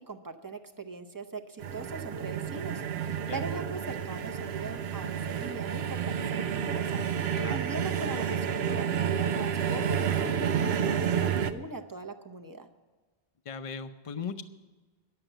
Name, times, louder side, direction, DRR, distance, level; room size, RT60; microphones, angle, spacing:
voice 1, 0.1-12.7, right 3 dB, 20° right, 6 dB, 0.7 m, -41 dB
sound 1, 1.6-11.5, right 8 dB, 85° right, 0.9 m, -30 dB
voice 2, 13.4-14.4, left 6 dB, 40° left, 10 dB, 0.6 m, -38 dB
11.0 x 7.7 x 8.9 m, 1.3 s
omnidirectional pair, 1.0 m